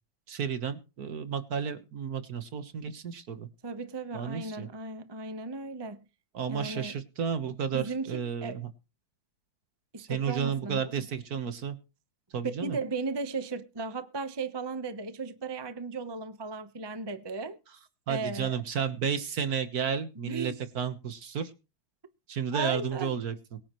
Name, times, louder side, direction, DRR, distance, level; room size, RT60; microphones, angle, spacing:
voice 1, 0.3-3.5 4.1-4.7 6.3-8.7 10.0-11.8 12.3-12.8 18.1-21.5 22.3-23.6, right 7 dB, 50° right, 1.6 m, -32 dB
voice 2, 3.6-6.0 6.5-7.0 7.7-8.6 9.9-11.1 12.6-17.6 18.1-18.6 20.2-20.5 22.5-23.2, right 4 dB, 25° right, 0.5 m, -36 dB
23.0 x 9.7 x 3.1 m
omnidirectional pair, 2.3 m